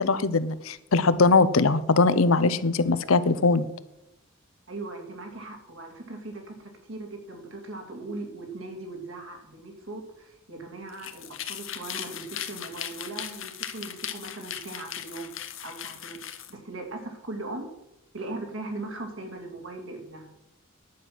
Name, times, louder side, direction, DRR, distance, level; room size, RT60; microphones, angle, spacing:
voice 1, 0.0-3.7, left 3 dB, 85° left, 14 dB, 0.8 m, -21 dB
voice 2, 4.7-16.2 16.5-17.7 18.1-20.3, right 2 dB, 70° right, 2 dB, 2.7 m, -39 dB
sound 1, 10.9-16.5, left 10 dB, 70° left, 1.1 m, -38 dB
11.0 x 7.7 x 6.1 m, 0.86 s
head